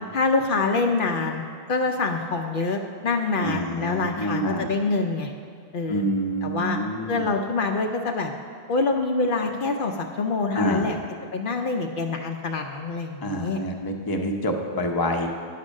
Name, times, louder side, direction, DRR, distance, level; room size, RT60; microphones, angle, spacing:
voice 1, 0.1-1.4 1.7-5.3 5.7-6.0 6.4-6.8 7.1-8.3 8.7-11.0 11.3-13.6, left 3 dB, 60° left, 3 dB, 0.7 m, -25 dB
voice 2, 3.4-4.7 5.9-7.3 10.5-10.9 13.2-15.3, equal, 25° left, 3 dB, 0.7 m, -27 dB
9.8 x 5.8 x 6.3 m, 2.4 s
omnidirectional pair, 1.0 m